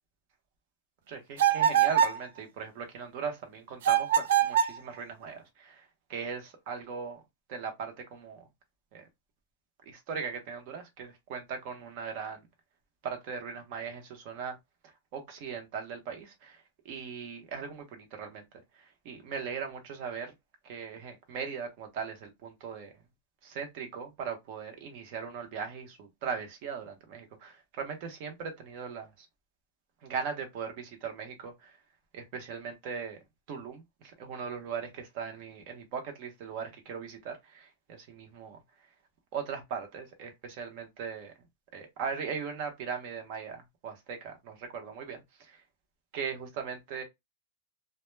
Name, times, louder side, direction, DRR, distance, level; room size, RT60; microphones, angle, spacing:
voice 1, 1.1-7.2 7.5-8.4 8.9-9.1 9.9-12.5 13.0-14.6 14.8-18.4 18.7-20.3 20.6-22.9 23.4-29.3 30.0-31.8 32.1-33.2 33.5-38.6 39.3-41.3 41.7-45.6 46.1-47.0, right 6 dB, 40° right, 0.7 m, -39 dB
sound 1, 1.4-2.2 3.8-4.8, right 9 dB, 60° right, 0.3 m, -24 dB
2.1 x 2.1 x 3.1 m
supercardioid pair, 175°, 0 cm